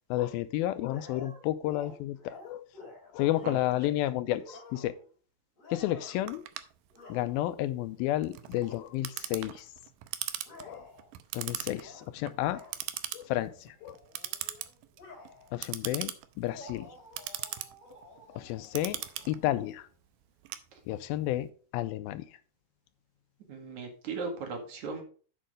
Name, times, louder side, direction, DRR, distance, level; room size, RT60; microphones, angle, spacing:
voice 1, 0.1-2.7 3.1-4.9 5.7-6.4 7.1-9.7 10.7-10.9 11.3-12.6 13.1-14.0 15.5-16.9 18.4-19.0 19.3-19.8 20.9-21.5 21.7-22.2, left 14 dB, 85° left, 2.3 m, -31 dB
sound 1, 0.9-3.9 4.4-5.1 5.6-6.3 6.9-7.6 8.6-8.8 9.5-9.6 10.4-11.1 11.6-12.1 12.4-12.8 13.3-13.5 13.8-15.6 16.5-19.8, left 3 dB, 25° left, 2.4 m, -51 dB
Clock, 6.3-21.2, right 13 dB, 80° right, 2.1 m, -40 dB
voice 2, 23.5-25.0, right 4 dB, 55° right, 3.0 m, -37 dB
7.8 x 7.4 x 4.9 m
omnidirectional pair, 4.4 m